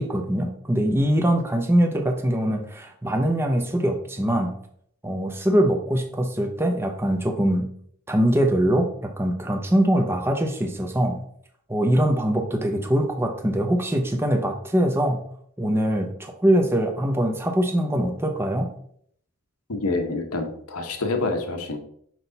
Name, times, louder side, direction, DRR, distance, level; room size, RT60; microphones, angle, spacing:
voice 1, 0.0-4.5 5.0-7.7 8.1-11.2 11.7-15.2 15.6-18.7, right 1 dB, 10° right, 3 dB, 0.7 m, -22 dB
voice 2, 19.7-21.8, left 3 dB, 85° left, 5 dB, 1.2 m, -27 dB
6.2 x 5.5 x 4.0 m, 0.64 s
head